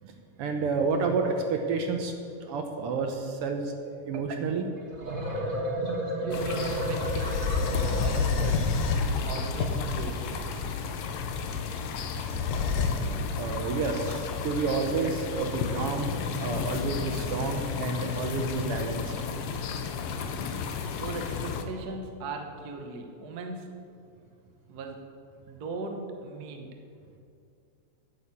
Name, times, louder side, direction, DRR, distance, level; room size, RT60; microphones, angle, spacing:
voice 1, 0.0-2.1 2.4-4.7 13.4-16.1 16.4-19.1, right 4 dB, 70° right, 4 dB, 1.4 m, -30 dB
sound 1, 4.8-8.6, right 1 dB, 50° right, 0.6 m, -32 dB
sound 2, 5.0-5.1 7.0-10.6 12.2-12.9, left 5 dB, 90° left, 2.5 m, -28 dB
voice 2, 6.2-7.3 8.0-10.3 21.0-23.6 24.7-25.0 25.5-26.7, right 3 dB, 90° right, 3 dB, 0.8 m, -38 dB
sound 3, 6.3-21.6, left 6 dB, 70° left, 1.5 m, -34 dB
9.9 x 7.0 x 8.3 m, 2.4 s
omnidirectional pair, 3.5 m